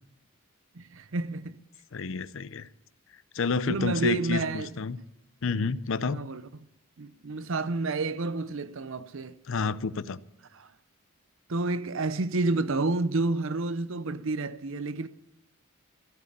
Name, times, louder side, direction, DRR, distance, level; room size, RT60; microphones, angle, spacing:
voice 1, 0.8-1.6 3.7-4.7 6.0-6.4 7.0-9.4 10.5-10.7 11.5-15.1, right 3 dB, 60° right, 0.7 m, -29 dB
voice 2, 1.9-2.7 3.3-5.0 5.4-6.2 9.5-10.2, left 4 dB, 60° left, 0.5 m, -29 dB
14.5 x 8.0 x 9.9 m
head